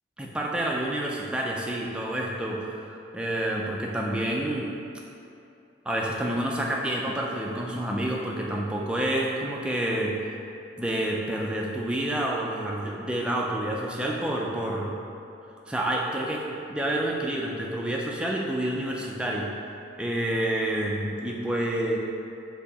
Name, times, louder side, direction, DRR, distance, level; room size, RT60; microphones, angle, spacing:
voice 1, 0.2-4.7 5.9-10.4 10.8-14.9 15.7-16.4 16.7-19.5 20.0-22.0, right 1 dB, 5° right, -2 dB, 0.3 m, -28 dB
4.4 x 2.8 x 4.1 m, 2.7 s
head